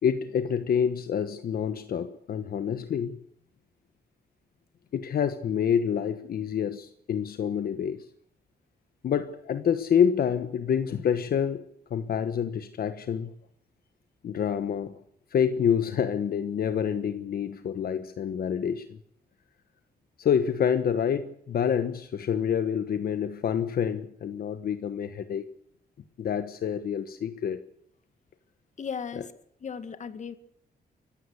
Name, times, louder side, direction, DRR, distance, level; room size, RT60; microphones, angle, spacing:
voice 1, 0.0-3.2 4.9-8.1 9.0-11.6 11.9-13.3 14.2-15.0 15.3-19.0 20.2-25.4 26.2-27.6, left 8 dB, 70° left, 10 dB, 1.2 m, -27 dB
voice 2, 28.8-29.3 29.6-30.3, left 6 dB, 50° left, 11 dB, 2.0 m, -36 dB
24.5 x 15.0 x 8.1 m, 0.69 s
cardioid pair, 115°, 16 cm